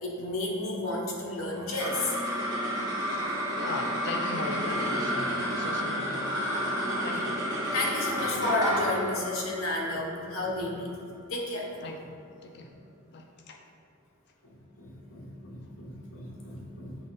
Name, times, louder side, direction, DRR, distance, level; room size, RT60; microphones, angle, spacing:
voice 1, 0.0-2.1 7.7-10.9 11.3-11.7 12.6-12.7 14.4-17.1, left 2 dB, 75° left, -2 dB, 1.1 m, -32 dB
sound 1, 1.5-12.1, equal, 20° right, 1.2 m, -31 dB
voice 2, 2.8-6.5 7.0-7.4 11.8-12.0 12.4-12.7 13.0-13.6, left 3 dB, 55° left, 3 dB, 0.5 m, -39 dB
7.9 x 3.1 x 4.1 m, 2.3 s
head